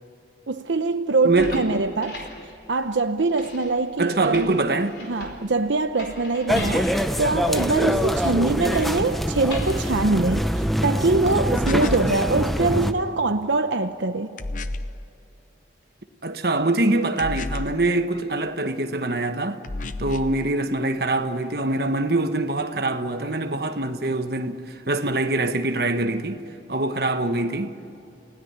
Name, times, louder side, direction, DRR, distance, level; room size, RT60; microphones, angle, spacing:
voice 1, 0.5-2.2 2.7-4.6 5.0-14.4, right 3 dB, 85° right, 0.8 m, -23 dB
sound 1, 1.2-10.9, left 2 dB, 65° left, 4.4 m, -42 dB
voice 2, 1.2-1.6 4.0-5.0 16.2-19.6 20.0-26.4 26.7-27.8, right 2 dB, 55° right, 1.3 m, -24 dB
sound 2, 6.5-12.9, equal, ahead, 0.9 m, -24 dB
sound 3, 11.6-12.2 14.4-15.0 17.2-17.9 19.6-20.4, left 2 dB, 45° left, 0.8 m, -31 dB
30.0 x 17.0 x 9.6 m
head